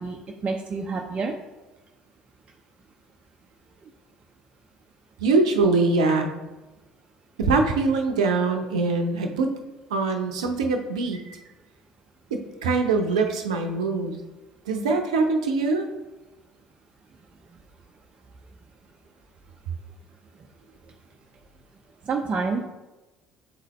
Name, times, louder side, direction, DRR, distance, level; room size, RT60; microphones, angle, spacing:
voice 1, 0.0-1.3 11.1-11.4 22.1-22.6, right 4 dB, 35° right, 1 dB, 0.6 m, -28 dB
voice 2, 5.2-6.3 7.4-9.5 9.9-11.2 12.3-14.2 14.7-15.9, right 3 dB, 80° right, 4 dB, 0.7 m, -23 dB
7.6 x 4.0 x 3.1 m, 1.1 s
hypercardioid pair, 60°, 3 cm